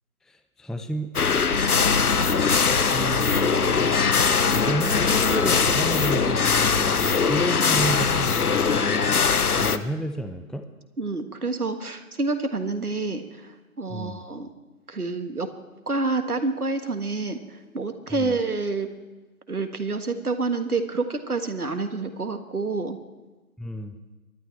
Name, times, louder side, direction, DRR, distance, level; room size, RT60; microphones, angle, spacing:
voice 1, 0.3-1.4 2.7-4.3 4.5-9.0 9.6-10.7 13.9-14.2 18.1-18.4 23.6-24.0, right 1 dB, ahead, 8 dB, 0.4 m, -32 dB
sound 1, 1.1-9.8, left 5 dB, 80° left, 0.9 m, -21 dB
sound 2, 1.5-7.6, left 1 dB, 30° left, 1.1 m, -34 dB
voice 2, 11.0-14.5 14.9-15.5 15.9-18.9 19.5-23.0, right 3 dB, 80° right, 8 dB, 1.7 m, -28 dB
24.0 x 12.0 x 3.3 m, 1.2 s
figure-of-eight pair, 170°, 44 cm